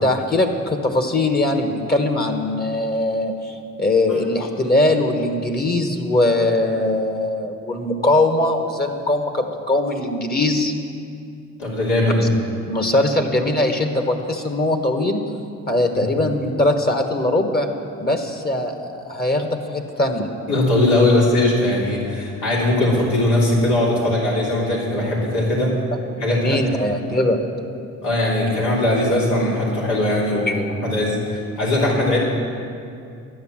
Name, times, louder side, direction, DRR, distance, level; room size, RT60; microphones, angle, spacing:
voice 1, 0.0-10.7 12.2-12.3 12.7-15.2 15.7-17.7 18.0-20.3 26.3-27.4 30.5-30.6, left 1 dB, 30° left, 5 dB, 1.3 m, -21 dB
voice 2, 11.6-12.3 15.9-16.0 20.5-25.7 26.2-26.6 28.0-32.2, left 1 dB, 90° left, -5 dB, 3.2 m, -20 dB
12.0 x 9.5 x 7.4 m, 2.4 s
cardioid pair, 90°, 30 cm